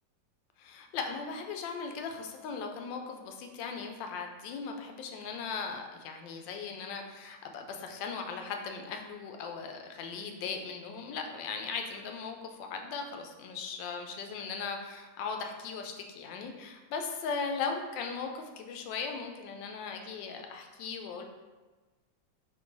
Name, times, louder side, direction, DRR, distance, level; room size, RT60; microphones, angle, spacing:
voice 1, 0.6-21.2, left 5 dB, 85° left, 4 dB, 1.3 m, -38 dB
3.7 x 2.9 x 3.8 m, 1.3 s
omnidirectional pair, 1.9 m